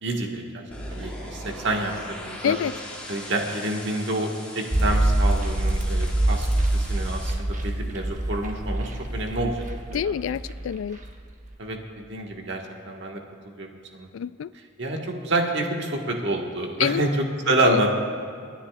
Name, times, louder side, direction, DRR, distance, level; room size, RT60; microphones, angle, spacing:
voice 1, 0.0-0.6 0.9-2.5 3.1-4.3 4.5-6.5 6.7-9.6 9.9-10.0 11.6-11.8 12.1-13.2 13.6-14.1 14.8-18.0, right 2 dB, 65° right, 1 dB, 1.6 m, -28 dB
sound 1, 0.7-7.3, left 1 dB, 5° left, 2.3 m, -40 dB
sound 2, 4.7-11.2 11.5-11.6, right 1 dB, 40° right, 1.1 m, -25 dB
voice 2, 9.9-11.0 14.1-14.5 16.8-17.0 17.6-17.8, left 8 dB, 75° left, 18 dB, 0.3 m, -26 dB
28.5 x 10.0 x 2.4 m, 2.3 s
head